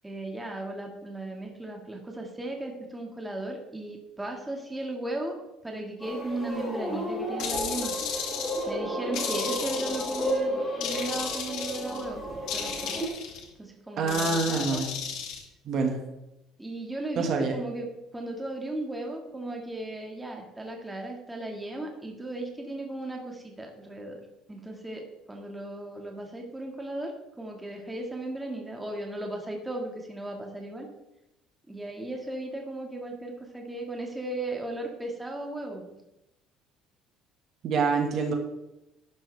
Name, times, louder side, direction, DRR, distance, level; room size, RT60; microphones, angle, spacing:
voice 1, 0.0-5.4 5.6-7.9 8.7-13.0 13.6-14.8 16.6-17.9 18.1-24.2 24.5-30.9 31.7-35.9, right 1 dB, 10° right, 1 dB, 1.8 m, -36 dB
sound 1, 6.0-13.1, equal, 20° left, 4.9 m, -33 dB
sound 2, 7.4-8.7 9.1-10.4 10.8-12.0 12.5-13.4 14.1-15.4, left 7 dB, 65° left, 2.1 m, -34 dB
voice 2, 14.0-14.9 15.6-16.0 17.1-17.6 37.6-38.3, right 4 dB, 45° right, 3 dB, 1.6 m, -26 dB
12.0 x 10.5 x 3.4 m, 0.90 s
cardioid pair, 155°, 0 cm